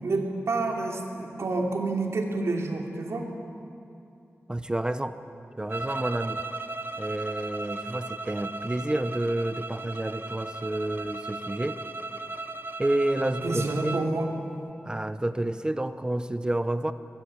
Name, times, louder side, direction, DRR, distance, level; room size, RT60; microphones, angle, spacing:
voice 1, 0.0-3.3 13.2-14.3, right 3 dB, 80° right, 1 dB, 3.1 m, -29 dB
voice 2, 4.5-5.2 5.6-6.4 7.0-11.8 12.8-14.0 14.8-16.9, right 1 dB, 20° right, 11 dB, 0.9 m, -29 dB
sound 1, 5.7-14.1, right 3 dB, 50° right, 0.8 m, -36 dB
23.0 x 21.0 x 9.0 m, 2.7 s
wide cardioid pair, 110°, 5 cm